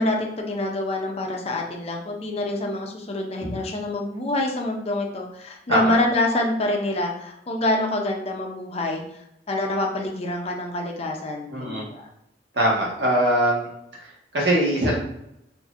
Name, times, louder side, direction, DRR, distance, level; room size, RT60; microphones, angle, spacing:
voice 1, 0.0-9.0 9.5-12.1, left 1 dB, 35° left, 1 dB, 0.5 m, -26 dB
voice 2, 11.5-11.8 12.5-13.7 14.0-14.9, right 1 dB, 70° right, -4 dB, 1.3 m, -22 dB
4.1 x 2.6 x 2.5 m, 0.81 s
head